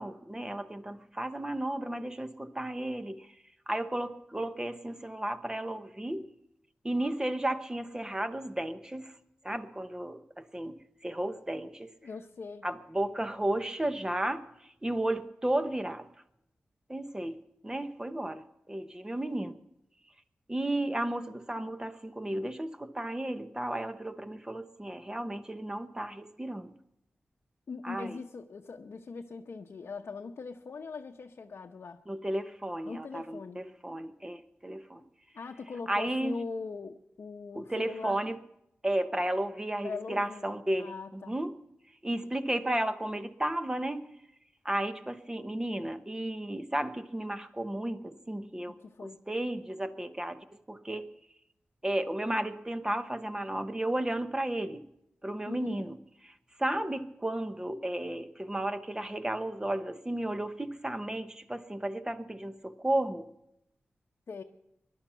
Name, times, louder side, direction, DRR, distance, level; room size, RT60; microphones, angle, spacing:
voice 1, 0.0-3.3 3.7-6.3 6.8-9.1 9.4-11.9 12.6-16.1 16.9-19.6 20.5-26.7 27.8-28.2 32.1-35.0 35.9-36.4 37.5-38.4 38.8-41.6 42.0-44.1 44.6-51.1 51.8-54.9 55.2-56.0 56.2-63.3, right 1 dB, 15° right, 10 dB, 1.0 m, -33 dB
voice 2, 12.0-12.7 27.7-32.0 32.9-33.7 35.3-38.2 39.8-40.5 40.8-41.4 48.7-49.2 55.5-55.8 64.3-64.4, left 4 dB, 70° left, 1 dB, 0.8 m, -41 dB
20.5 x 11.5 x 5.7 m, 0.81 s
wide cardioid pair, 85°, 4 cm